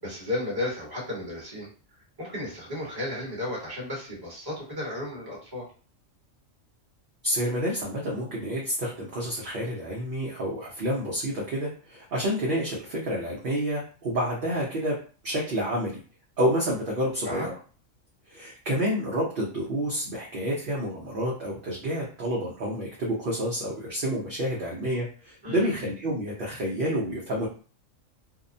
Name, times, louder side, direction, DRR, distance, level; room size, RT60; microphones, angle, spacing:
voice 1, 0.0-1.7 2.2-5.6 17.2-17.5 25.4-25.7, left 1 dB, 20° right, -4 dB, 1.1 m, -33 dB
voice 2, 7.2-15.0 15.2-16.0 16.4-17.5 18.3-27.5, equal, 55° right, -5 dB, 0.7 m, -29 dB
2.7 x 2.0 x 2.6 m, 0.39 s
omnidirectional pair, 1.3 m